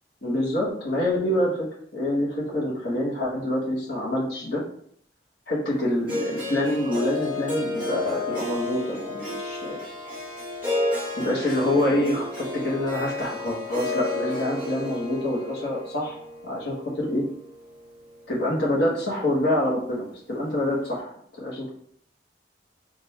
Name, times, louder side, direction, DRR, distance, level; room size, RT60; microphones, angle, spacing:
voice 1, 0.2-1.7 1.9-4.6 5.5-9.8 11.1-16.2 16.4-17.2 18.3-21.1 21.4-21.7, left 1 dB, 60° left, -5 dB, 1.2 m, -26 dB
Harp, 6.1-18.2, left 2 dB, 5° right, 1.6 m, -32 dB
3.7 x 2.5 x 4.3 m, 0.62 s
head